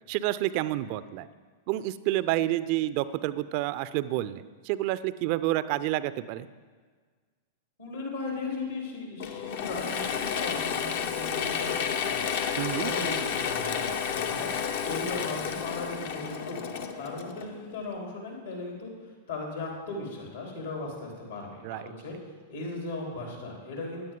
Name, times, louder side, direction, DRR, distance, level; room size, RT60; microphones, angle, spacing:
voice 1, 0.1-1.3 1.7-6.5 12.6-12.9 21.6-21.9, right 15 dB, 45° right, 16 dB, 0.4 m, -29 dB
voice 2, 7.8-12.3 12.8-18.9 19.3-22.1 22.5-24.1, left 3 dB, 70° left, -1 dB, 3.5 m, -37 dB
Mechanisms / Drill, 9.2-17.8, left 7 dB, 55° left, 0.8 m, -31 dB
16.5 x 10.5 x 3.8 m, 1.5 s
figure-of-eight pair, 95°, 0 cm